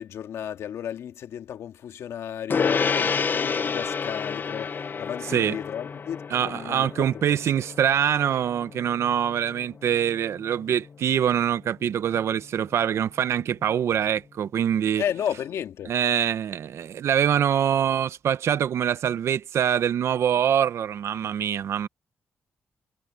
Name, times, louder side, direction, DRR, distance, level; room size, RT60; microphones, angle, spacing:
voice 1, 0.0-7.2 15.0-15.9, left 9 dB, 80° left, 2.1 m, -33 dB
Gong, 2.5-12.2, left 5 dB, 45° left, 0.7 m, -30 dB
voice 2, 6.3-15.0 15.9-21.9, right 9 dB, 75° right, 1.0 m, -24 dB
cardioid pair, 70°, 5 cm